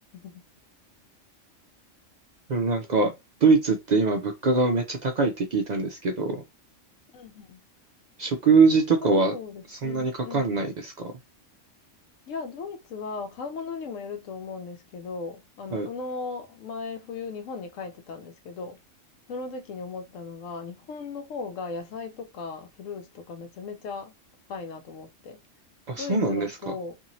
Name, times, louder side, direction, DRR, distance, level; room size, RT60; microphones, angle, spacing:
voice 1, 2.5-3.1 3.4-6.4 8.2-9.3 9.7-10.9 15.7-15.9 25.9-26.7, right 4 dB, 65° right, 0.4 m, -23 dB
voice 2, 7.1-7.6 9.0-10.7 12.3-18.8 19.3-24.1 24.5-25.4 26.0-26.9, left 4 dB, 85° left, 1.0 m, -37 dB
2.9 x 2.7 x 2.6 m
omnidirectional pair, 1.3 m